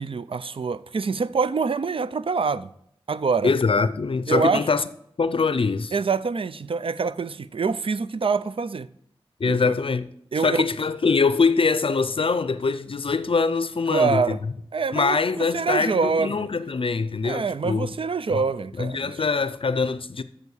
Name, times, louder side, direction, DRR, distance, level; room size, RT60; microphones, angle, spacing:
voice 1, 0.0-2.7 3.1-3.5 4.3-4.6 5.9-8.9 9.4-9.7 10.3-10.7 13.9-14.4 14.7-16.5 17.2-19.2, right 5 dB, 65° right, 0.5 m, -25 dB
voice 2, 3.4-4.8 5.2-6.0 9.4-10.1 10.4-14.4 14.9-17.9 18.3-18.4 18.8-20.2, left 4 dB, 65° left, 0.5 m, -23 dB
8.3 x 7.0 x 7.1 m
wide cardioid pair, 65°, 10 cm